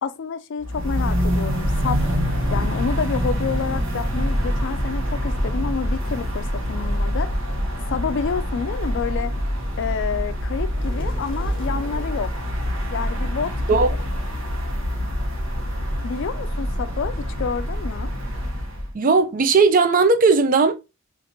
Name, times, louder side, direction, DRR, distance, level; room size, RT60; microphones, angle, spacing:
voice 1, 0.0-2.0 2.5-7.3 7.9-9.3 9.8-12.3 12.9-13.9 16.0-18.1, left 6 dB, 55° left, 0.4 m, -28 dB
sound 1, 0.6-18.9, equal, 65° right, 1.0 m, -25 dB
sound 2, 10.7-12.2, equal, 25° left, 1.0 m, -40 dB
voice 2, 18.9-20.7, right 4 dB, 40° right, 0.4 m, -17 dB
3.9 x 2.5 x 2.8 m
head